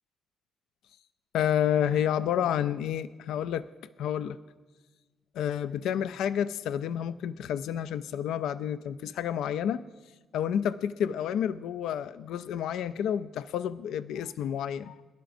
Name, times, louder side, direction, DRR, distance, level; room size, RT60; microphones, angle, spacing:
voice 1, 1.3-3.7 4.0-4.4 5.4-9.9 10.3-15.0, left 9 dB, 85° left, 14 dB, 0.3 m, -30 dB
23.0 x 11.5 x 2.6 m, 1.3 s
cardioid pair, 90°, 0 cm